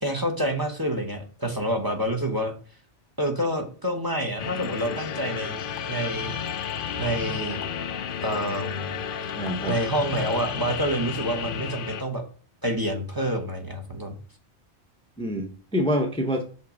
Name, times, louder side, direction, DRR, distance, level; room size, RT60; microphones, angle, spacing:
voice 1, 0.0-2.5 3.2-5.6 5.9-6.3 6.9-7.6 8.2-8.9 9.7-12.2 12.6-14.2, right 1 dB, 20° right, 5 dB, 0.9 m, -28 dB
sound 1, 4.4-12.0, left 8 dB, 60° left, 0.6 m, -32 dB
voice 2, 9.4-9.8 15.2-16.4, equal, 5° left, 4 dB, 0.5 m, -26 dB
5.6 x 3.4 x 5.0 m, 0.42 s
omnidirectional pair, 1.2 m